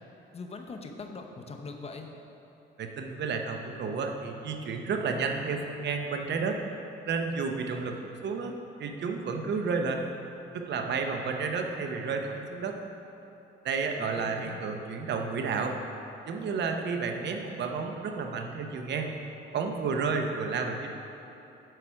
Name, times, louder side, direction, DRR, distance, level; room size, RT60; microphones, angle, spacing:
voice 1, 0.3-2.1 14.0-14.6, left 3 dB, 30° left, 3 dB, 0.8 m, -41 dB
voice 2, 2.8-6.6 7.0-10.0 10.5-12.8 13.6-15.7 16.3-19.1 19.5-20.9, right 4 dB, 60° right, 4 dB, 0.8 m, -31 dB
7.8 x 4.9 x 4.5 m, 3.0 s
cardioid pair, 90°, 20 cm